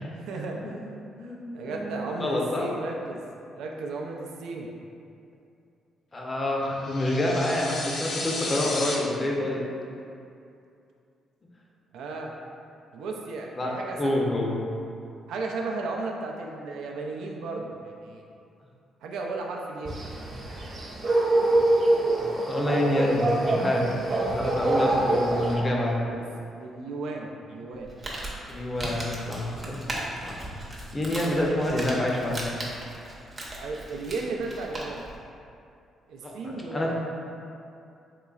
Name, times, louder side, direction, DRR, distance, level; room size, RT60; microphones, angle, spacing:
voice 1, 0.2-0.8 1.2-3.2 3.6-4.7 11.9-12.3 12.9-14.0 15.3-18.3 19.0-19.9 24.7-25.5 26.1-26.2 26.6-28.0 31.3-31.6 33.6-35.0 36.1-36.9, right 3 dB, 85° right, 0 dB, 0.4 m, -34 dB
voice 2, 1.2-1.9 2.2-2.7 6.1-9.6 13.6-14.6 22.1-23.9 24.3-26.0 28.5-29.9 30.2-30.4 30.9-32.4 36.2-36.9, left 1 dB, 25° left, -2 dB, 0.6 m, -27 dB
sound 1, 6.8-8.9, left 2 dB, 70° left, 0.6 m, -33 dB
sound 2, 19.8-25.5, right 2 dB, 55° right, 0.8 m, -25 dB
Crumpling crinkling, 27.7-35.2, right 1 dB, 30° right, 0.7 m, -37 dB
3.8 x 3.1 x 2.3 m, 2.5 s
cardioid pair, 90°, 0 cm